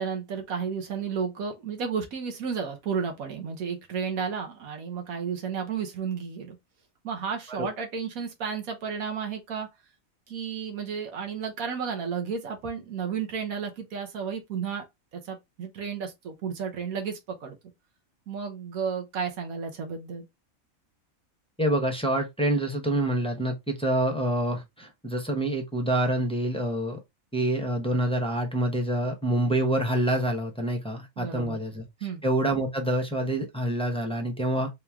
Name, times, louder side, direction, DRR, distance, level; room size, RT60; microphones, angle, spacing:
voice 1, 0.0-6.6 7.0-9.7 10.3-14.8 15.1-17.6 18.3-20.3 31.2-31.6 32.0-32.2, right 6 dB, 85° right, 1.3 m, -32 dB
voice 2, 21.6-27.0 27.3-31.8 32.2-34.7, right 1 dB, 5° left, 0.7 m, -26 dB
3.5 x 3.0 x 3.5 m
omnidirectional pair, 1.5 m